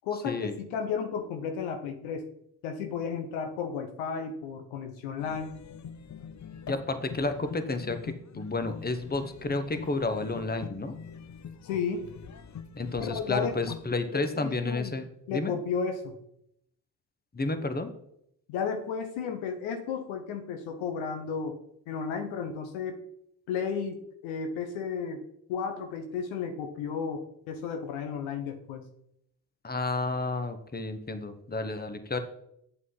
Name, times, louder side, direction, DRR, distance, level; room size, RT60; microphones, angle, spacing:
voice 1, 0.0-2.2 2.6-5.5 11.6-12.0 13.0-13.5 14.1-14.9 15.3-16.1 18.5-21.6 21.9-23.0 23.5-25.2 25.5-28.8, left 6 dB, 75° left, 5 dB, 1.1 m, -33 dB
sound 1, 5.2-13.9, left 7 dB, 35° left, 0.7 m, -44 dB
voice 2, 6.7-10.9 12.8-15.5 17.3-17.9 29.6-32.2, left 3 dB, 20° left, 9 dB, 1.2 m, -31 dB
8.5 x 7.3 x 4.0 m, 0.74 s
hypercardioid pair, 40°, 47 cm